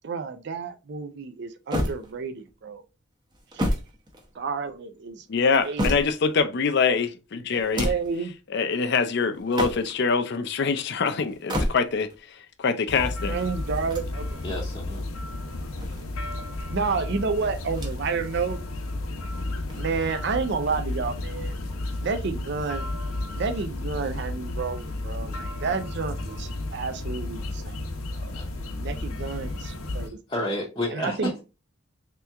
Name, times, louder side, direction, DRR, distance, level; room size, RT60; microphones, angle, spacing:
voice 1, 0.0-2.8 3.5-3.6 4.4-5.2 5.6-5.9 7.8-8.3 13.3-14.4 16.7-18.6 19.8-21.6 22.0-22.9 23.3-27.8 28.1-28.3 28.8-30.2 30.9-31.3, right 4 dB, 55° right, 0.4 m, -30 dB
sound 1, 1.7-2.5 3.3-4.7 5.3-6.4 7.5-8.2 9.3-10.1 11.3-12.2 13.7-14.6 15.5-16.5 17.7-18.2 18.6-18.7 19.6-20.4, equal, 20° right, 0.7 m, -31 dB
voice 2, 5.3-7.9 8.5-12.1 12.6-13.4, left 5 dB, 55° left, 0.5 m, -24 dB
sound 2, 12.9-30.1, left 2 dB, 90° left, 0.8 m, -33 dB
voice 3, 14.4-15.1 28.3-28.4 29.4-29.5 30.3-31.4, left 1 dB, 20° left, 0.7 m, -30 dB
3.4 x 2.9 x 3.4 m
head